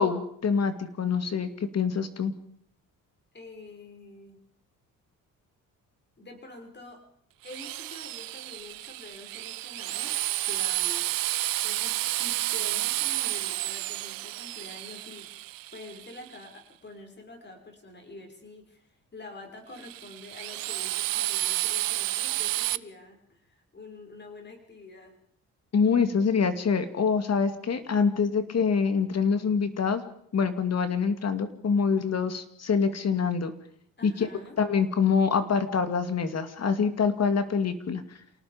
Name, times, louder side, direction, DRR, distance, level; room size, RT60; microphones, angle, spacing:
voice 1, 0.0-2.3 25.7-30.0 30.3-33.5 34.0-34.3 34.6-38.0, left 5 dB, 50° left, 10 dB, 2.6 m, -25 dB
voice 2, 3.3-4.4 6.2-7.0 7.4-11.2 11.6-15.3 15.7-25.1 34.0-34.6, left 2 dB, 30° left, 4 dB, 6.6 m, -47 dB
Drill, 7.4-16.4 19.8-22.8, right 17 dB, 80° right, 0.8 m, -31 dB
28.5 x 18.5 x 5.3 m, 0.67 s
cardioid pair, 85°, 34 cm